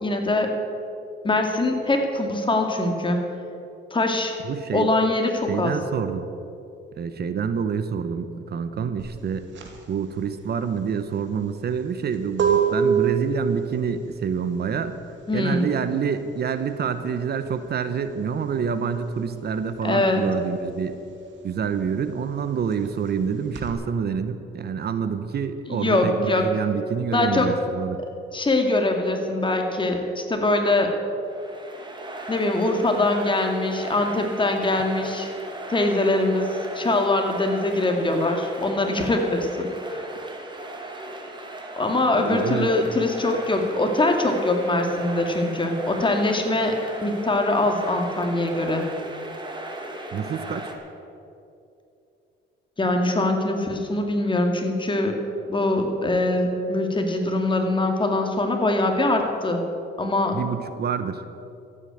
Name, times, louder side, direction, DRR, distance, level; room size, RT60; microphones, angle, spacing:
voice 1, 0.0-0.5 1.2-3.2 3.9-4.3 4.7-5.7 15.3-15.7 19.8-20.2 25.7-26.5 27.1-27.5 28.3-30.9 32.3-35.3 35.7-36.5 36.7-39.7 41.8-46.7 47.0-48.8 52.8-55.1 55.5-59.6 60.0-60.3, left 2 dB, 25° left, 3 dB, 2.4 m, -23 dB
voice 2, 4.4-4.9 5.5-6.3 7.0-9.5 9.9-14.9 15.3-21.0 21.4-28.0 42.2-42.7 50.1-50.7 60.3-61.2, right 6 dB, 55° right, 11 dB, 0.9 m, -27 dB
sound 1, 9.0-19.2 19.5-23.7, right 6 dB, 70° right, 2.6 m, -28 dB
sound 2, 31.2-50.7, right 1 dB, 25° right, 2.5 m, -37 dB
14.0 x 9.1 x 9.1 m, 2.7 s
cardioid pair, 90°, 20 cm